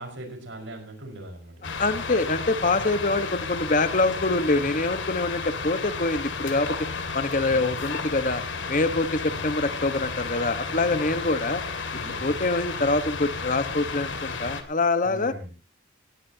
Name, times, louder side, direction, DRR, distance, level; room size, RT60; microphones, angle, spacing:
voice 1, 0.0-1.8 7.5-7.7 9.3-9.5 10.7-11.2 12.0-12.5 15.0-15.5, right 1 dB, 75° right, 4 dB, 5.2 m, -41 dB
sound 1, 1.6-14.6, left 4 dB, 80° left, 2.4 m, -33 dB
voice 2, 1.8-6.8 7.1-8.4 8.7-11.6 12.2-15.3, left 2 dB, 45° left, 10 dB, 1.4 m, -25 dB
18.0 x 16.5 x 2.9 m, 0.34 s
head